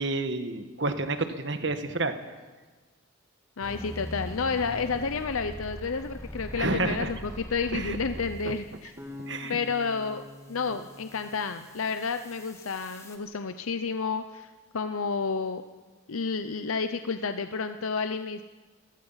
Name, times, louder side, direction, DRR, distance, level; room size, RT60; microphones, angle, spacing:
voice 1, 0.0-2.1 6.6-7.1 7.7-8.0 9.3-9.6, right 2 dB, 60° right, 8 dB, 1.5 m, -29 dB
voice 2, 3.6-8.9 9.5-15.6 16.1-18.4, left 5 dB, 90° left, 9 dB, 0.7 m, -31 dB
sound 1, 3.6-8.8 10.6-13.2, left 1 dB, 15° left, 1.7 m, -42 dB
sound 2, 9.0-12.1, left 2 dB, 15° right, 3.2 m, -45 dB
29.5 x 16.0 x 5.7 m, 1.4 s
head